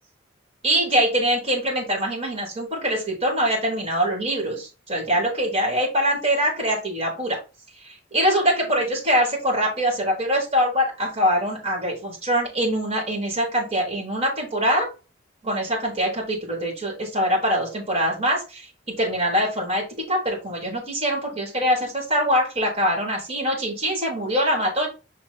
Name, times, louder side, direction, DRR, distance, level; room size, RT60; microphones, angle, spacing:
voice 1, 0.6-7.4 7.8-14.9 15.4-24.9, equal, 30° right, -2 dB, 4.1 m, -23 dB
6.0 x 4.0 x 4.6 m, 0.30 s
head